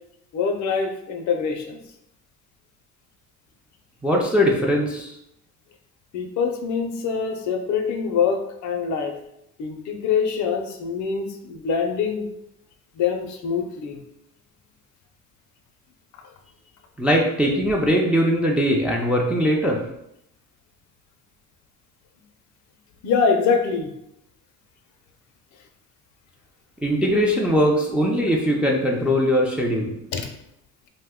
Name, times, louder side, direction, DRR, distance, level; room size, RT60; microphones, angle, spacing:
voice 1, 0.3-1.8 6.1-9.1 9.6-12.3 13.0-14.0 23.0-23.9 30.1-30.3, left 6 dB, 60° left, 5 dB, 0.5 m, -24 dB
voice 2, 4.0-5.1 17.0-19.8 26.8-30.0, equal, 5° right, -2 dB, 0.4 m, -20 dB
2.6 x 2.1 x 3.5 m, 0.80 s
cardioid pair, 105°, 33 cm